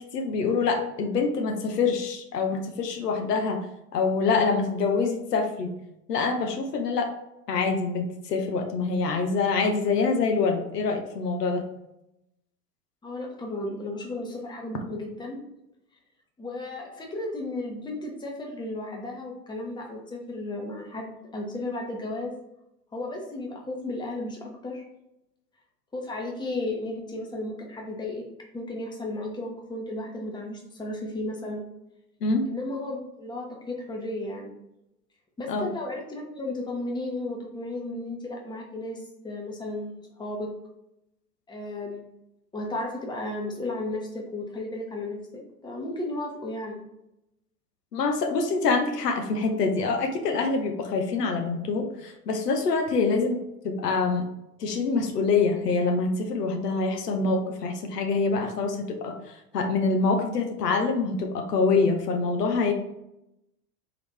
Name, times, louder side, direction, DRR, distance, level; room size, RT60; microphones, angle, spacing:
voice 1, 0.0-3.6 3.9-5.7 6.1-7.1 7.5-11.6 32.2-32.5 35.5-35.7 47.9-53.4 53.6-54.2 54.6-62.7, left 4 dB, 80° left, 4 dB, 0.8 m, -25 dB
voice 2, 13.0-15.4 16.4-22.3 22.9-24.8 25.9-28.2 28.5-31.6 32.5-34.5 35.4-40.5 41.5-42.0 42.5-46.8, left 2 dB, 10° left, 0 dB, 0.9 m, -34 dB
3.8 x 3.5 x 3.2 m, 0.86 s
hypercardioid pair, 90°, 47 cm